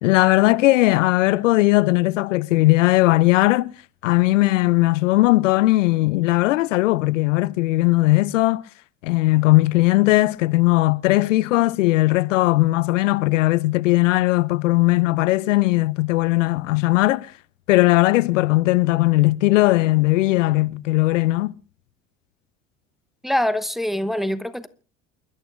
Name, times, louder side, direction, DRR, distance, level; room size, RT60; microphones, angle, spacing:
voice 1, 0.0-3.7 4.0-8.6 9.0-17.3 17.7-21.5, left 19 dB, 85° left, 0.7 m, -18 dB
voice 2, 23.2-24.7, left 1 dB, ahead, 1.0 m, -24 dB
29.0 x 11.5 x 2.5 m
hypercardioid pair, 70°, 37 cm